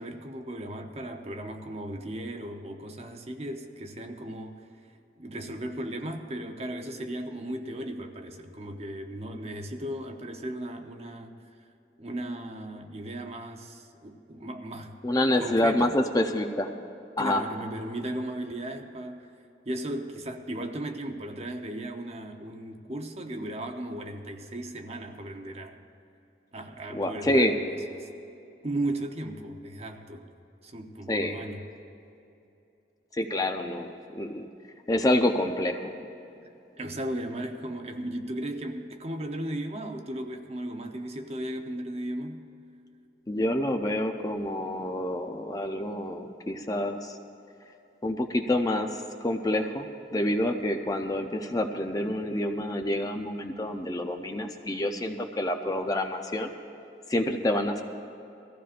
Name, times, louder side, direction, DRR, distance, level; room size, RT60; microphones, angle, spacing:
voice 1, 0.0-4.7 5.2-11.4 12.0-15.0 15.4-16.0 17.2-19.3 19.7-25.8 26.5-27.7 28.0-28.1 28.6-30.3 30.6-31.7 36.8-42.5, right 1 dB, 35° right, 0.8 m, -36 dB
voice 2, 15.0-16.7 17.2-17.4 26.9-27.6 31.1-31.4 33.1-34.5 34.9-36.0 43.3-47.2 48.0-56.5 57.1-57.8, left 1 dB, 20° left, 0.5 m, -27 dB
22.0 x 15.0 x 2.5 m
head